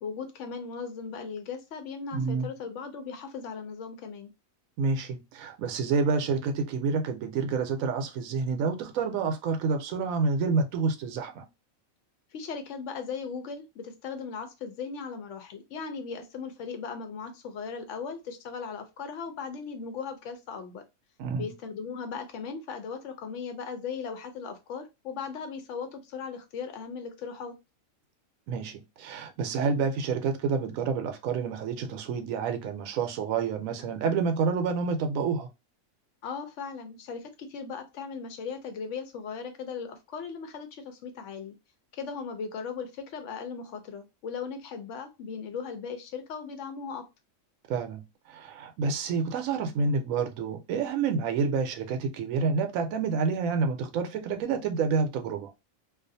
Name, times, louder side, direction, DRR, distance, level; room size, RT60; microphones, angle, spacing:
voice 1, 0.0-4.3 12.3-20.8 21.4-27.6 36.2-41.5 41.9-47.1, left 5 dB, 65° left, 0.8 m, -38 dB
voice 2, 2.1-2.5 4.8-11.4 21.2-21.5 28.5-35.5 47.7-48.0 48.3-55.5, right 5 dB, 75° right, 1.0 m, -28 dB
2.4 x 2.3 x 2.6 m
omnidirectional pair, 1.5 m